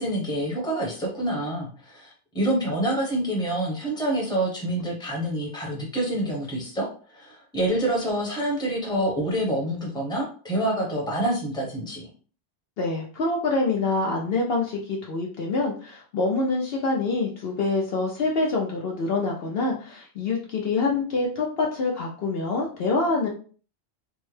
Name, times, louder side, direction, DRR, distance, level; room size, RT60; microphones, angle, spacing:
voice 1, 0.0-12.1, right 1 dB, 5° left, -3 dB, 0.9 m, -27 dB
voice 2, 12.8-23.3, left 3 dB, 60° left, -1 dB, 0.8 m, -26 dB
3.5 x 2.1 x 3.2 m, 0.41 s
omnidirectional pair, 1.2 m